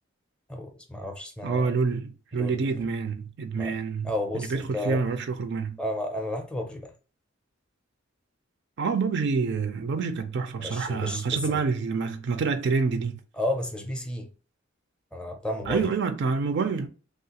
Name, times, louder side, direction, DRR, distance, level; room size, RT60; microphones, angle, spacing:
voice 1, 0.5-1.7 2.3-2.9 3.5-3.8 4.0-5.0 5.8-6.9 10.6-11.6 13.3-14.3 15.1-15.9, left 1 dB, 5° left, 0.4 m, -32 dB
voice 2, 1.4-5.8 8.8-13.2 15.7-16.9, right 5 dB, 60° right, 0.4 m, -27 dB
3.1 x 2.4 x 2.8 m
head